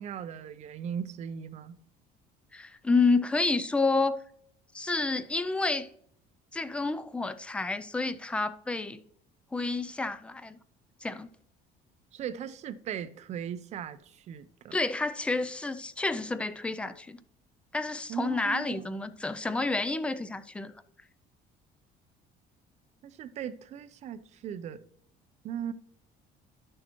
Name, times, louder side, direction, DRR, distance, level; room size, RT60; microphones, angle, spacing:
voice 1, 0.0-1.8 12.1-14.8 18.1-18.7 23.0-24.8 25.4-25.7, right 8 dB, 40° right, 0.6 m, -38 dB
voice 2, 2.5-4.2 4.7-5.9 6.5-9.0 9.5-10.6 11.0-11.3 14.7-17.2 17.7-20.7, left 3 dB, 5° left, 0.3 m, -29 dB
11.5 x 6.5 x 3.0 m
cardioid pair, 165°, 17 cm